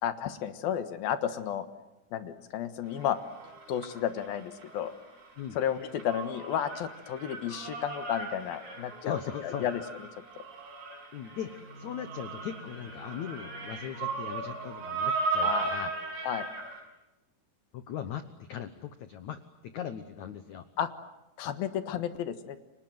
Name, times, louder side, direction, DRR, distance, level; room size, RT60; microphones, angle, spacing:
voice 1, 0.0-1.7 2.1-3.2 3.7-4.9 5.5-9.8 15.4-15.7 16.2-16.5 20.8-20.9 21.4-22.6, left 10 dB, 65° left, 11 dB, 2.8 m, -32 dB
sound 1, 2.9-5.0 5.2-16.8, right 3 dB, 75° right, 9.6 m, -36 dB
voice 2, 9.0-9.7 11.1-15.9 17.7-20.6, left 9 dB, 85° left, 11 dB, 1.6 m, -39 dB
Bowed string instrument, 11.4-15.5, right 1 dB, 10° left, 3.1 m, -50 dB
30.0 x 25.0 x 7.8 m, 0.98 s
omnidirectional pair, 5.1 m